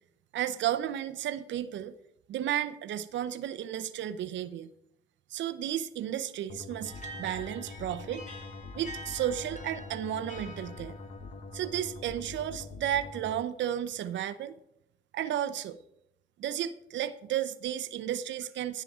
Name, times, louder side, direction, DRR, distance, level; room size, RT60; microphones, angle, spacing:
voice 1, 0.3-1.9 2.3-4.7 5.3-8.3 8.7-10.9 11.5-14.5 15.1-15.8 16.4-18.8, right 11 dB, 70° right, 13 dB, 0.6 m, -33 dB
sound 1, 6.5-13.3, left 3 dB, 75° left, 1.1 m, -44 dB
sound 2, 6.8-12.1, equal, 40° left, 2.6 m, -47 dB
11.5 x 10.5 x 3.6 m, 0.80 s
cardioid pair, 90°, 20 cm